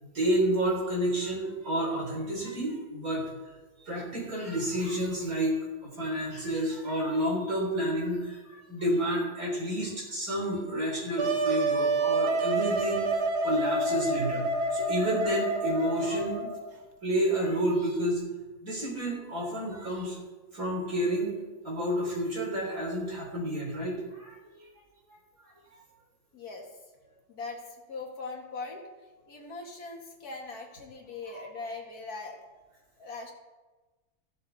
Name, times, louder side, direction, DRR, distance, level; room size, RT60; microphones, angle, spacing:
voice 1, 0.0-3.3 3.8-13.2 13.4-16.5 17.0-18.2 18.6-20.2 20.5-21.4 21.6-24.6 25.1-25.2 25.4-25.8 31.3-31.4, right 1 dB, 65° right, -3 dB, 4.7 m, -30 dB
Wind instrument woodwind instrument, 11.2-16.7, right 2 dB, 85° right, 1.7 m, -28 dB
voice 2, 26.3-26.7 27.3-28.9 29.3-32.5 33.0-33.3, left 3 dB, 75° left, 1 dB, 2.3 m, -40 dB
14.5 x 11.5 x 4.2 m, 1.2 s
omnidirectional pair, 1.6 m